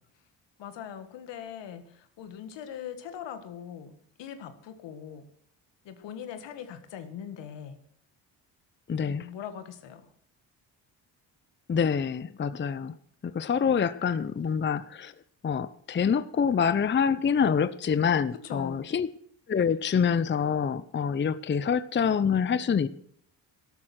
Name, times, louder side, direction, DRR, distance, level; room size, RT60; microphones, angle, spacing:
voice 1, 0.6-5.3 5.8-7.8 9.0-10.1 18.3-18.9, left 8 dB, 75° left, 10 dB, 1.9 m, -41 dB
voice 2, 8.9-9.3 11.7-12.9 13.2-15.1 15.4-19.1 19.5-22.9, left 6 dB, 25° left, 16 dB, 0.7 m, -26 dB
13.0 x 13.0 x 6.0 m, 0.65 s
supercardioid pair, 65°, 43 cm